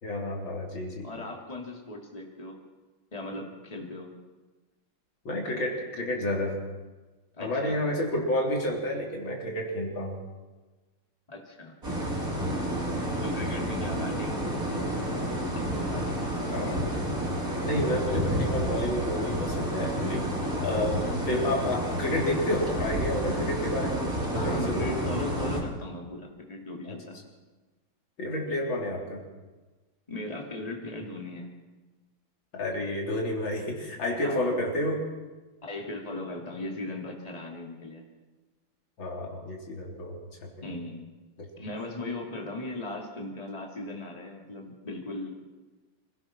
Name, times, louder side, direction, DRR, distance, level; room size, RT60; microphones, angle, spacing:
voice 1, 0.0-1.1 5.3-6.6 7.4-10.2 16.5-16.9 17.6-20.3 20.6-25.1 26.8-27.0 28.2-29.2 32.5-35.1 39.0-40.5 41.4-41.5, left 1 dB, 80° left, -1 dB, 4.1 m, -30 dB
voice 2, 1.0-2.6 3.1-4.1 7.3-7.8 11.3-11.8 13.2-15.1 15.5-16.8 20.7-21.2 24.3-27.2 30.1-31.5 34.2-34.6 35.6-38.0 40.6-41.1 41.6-45.3, left 2 dB, 20° left, 0 dB, 3.0 m, -38 dB
sound 1, 11.8-25.6, equal, 45° right, 4.9 m, -30 dB
26.0 x 16.5 x 6.1 m, 1.2 s
omnidirectional pair, 2.1 m